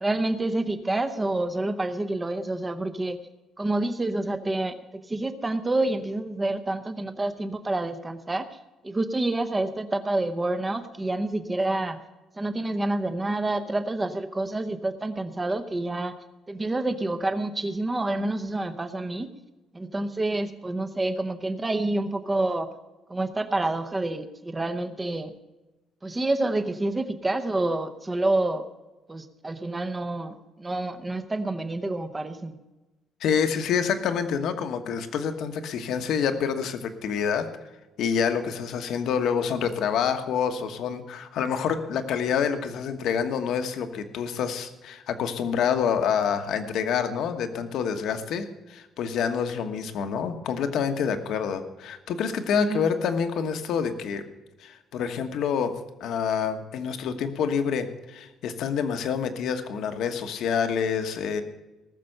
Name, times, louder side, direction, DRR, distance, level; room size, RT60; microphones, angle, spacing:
voice 1, 0.0-3.2 3.6-8.5 8.8-12.0 12.4-16.1 16.5-19.3 19.7-22.7 23.1-25.3 26.0-28.6 29.1-32.6 52.5-52.9, right 2 dB, 10° right, 10 dB, 0.8 m, -28 dB
voice 2, 33.2-37.5 38.0-54.2 54.6-61.4, left 7 dB, 55° left, 8 dB, 1.2 m, -27 dB
19.0 x 6.8 x 6.6 m, 1.1 s
cardioid pair, 180°, 0 cm